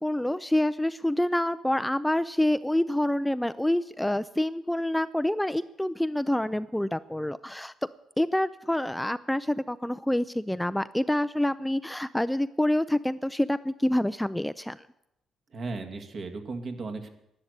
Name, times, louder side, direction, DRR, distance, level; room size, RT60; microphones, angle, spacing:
voice 1, 0.0-7.7 8.2-14.8, left 1 dB, 5° left, 13 dB, 0.4 m, -27 dB
voice 2, 15.5-17.1, right 3 dB, 50° right, 5 dB, 2.0 m, -36 dB
11.5 x 11.0 x 8.1 m, 0.83 s
cardioid pair, 90°, 0 cm